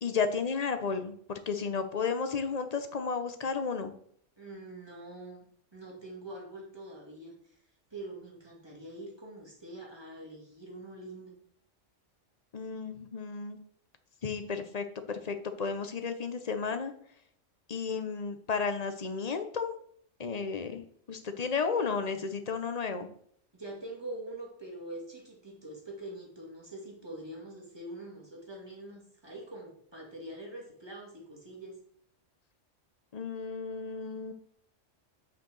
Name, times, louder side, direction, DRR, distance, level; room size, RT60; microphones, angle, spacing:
voice 1, 0.0-3.9 12.5-13.6 14.2-16.9 17.7-19.7 20.2-23.1 33.1-34.3, left 5 dB, 35° left, 8 dB, 0.8 m, -33 dB
voice 2, 4.4-5.5 5.7-7.6 7.9-11.4 23.5-31.8, right 1 dB, 20° right, -2 dB, 2.3 m, -44 dB
6.6 x 4.6 x 6.4 m, 0.62 s
omnidirectional pair, 1.3 m